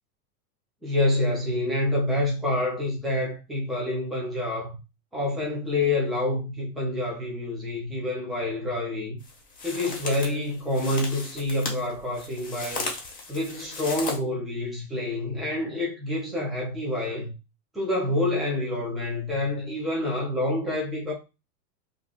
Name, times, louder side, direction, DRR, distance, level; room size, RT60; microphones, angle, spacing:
voice 1, 0.8-4.8 5.1-9.2 9.6-12.9 13.3-17.3 17.7-21.1, left 1 dB, ahead, 0.3 m, -27 dB
sound 1, 9.2-14.2, left 3 dB, 15° left, 0.8 m, -36 dB
2.5 x 2.3 x 3.5 m
hypercardioid pair, 120°, 48 cm